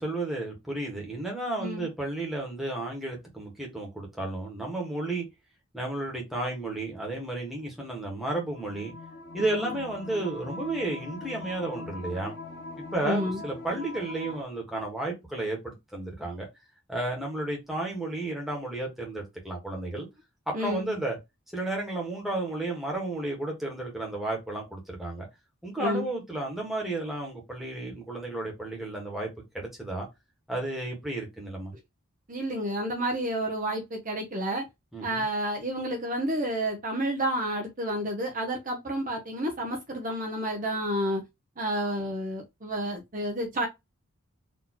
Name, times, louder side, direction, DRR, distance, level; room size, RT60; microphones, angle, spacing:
voice 1, 0.0-5.3 5.7-8.9 9.3-12.3 12.9-16.4 16.9-20.1 20.6-21.2 21.5-25.3 25.6-29.3 29.5-30.1 30.5-31.7 34.9-35.2, right 2 dB, ahead, 1.6 m, -32 dB
sound 1, 8.5-14.4, left 2 dB, 50° left, 0.9 m, -41 dB
voice 2, 9.4-9.8 13.0-13.4 20.5-20.9 25.8-26.1 32.3-34.6 35.0-41.2 41.6-43.7, equal, 35° right, 0.9 m, -30 dB
4.3 x 3.1 x 3.0 m
head